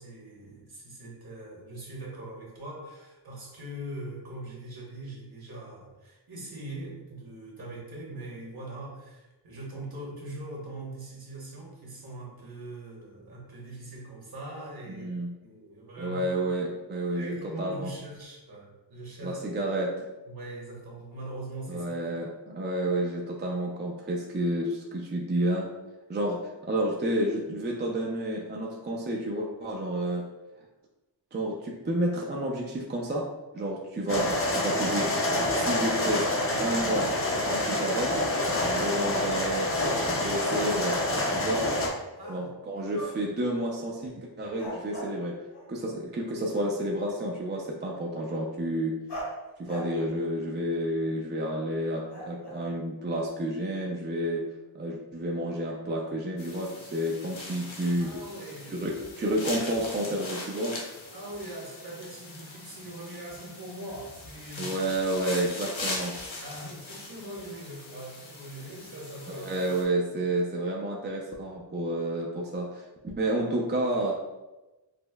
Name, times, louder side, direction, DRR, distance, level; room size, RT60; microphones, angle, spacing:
voice 1, 0.0-16.3 17.1-19.4 20.3-22.2 42.2-42.5 42.8-43.0 58.0-58.8 61.1-64.8 66.4-69.7 70.1-70.2, right 1 dB, 50° right, -4 dB, 1.1 m, -42 dB
voice 2, 14.9-15.3 16.0-17.9 19.2-20.1 21.7-25.7 26.1-26.4 26.6-30.2 31.3-33.3 33.5-35.1 35.5-36.3 36.6-38.1 38.6-39.7 40.1-41.0 41.3-41.7 42.3-45.3 45.7-48.9 49.6-54.4 54.7-58.2 58.7-60.8 64.6-66.1 69.3-74.1, right 1 dB, 25° right, -2 dB, 0.4 m, -30 dB
sound 1, 34.1-41.9, left 1 dB, 30° left, 0.5 m, -27 dB
sound 2, 42.0-42.5 42.9-43.4 43.8-43.9 44.6-45.8 49.1-51.1 52.1-53.3, right 1 dB, 60° left, 1.0 m, -41 dB
sound 3, 56.4-69.8, left 2 dB, 80° left, 0.8 m, -41 dB
5.0 x 2.0 x 2.2 m, 1.1 s
wide cardioid pair, 90°, 46 cm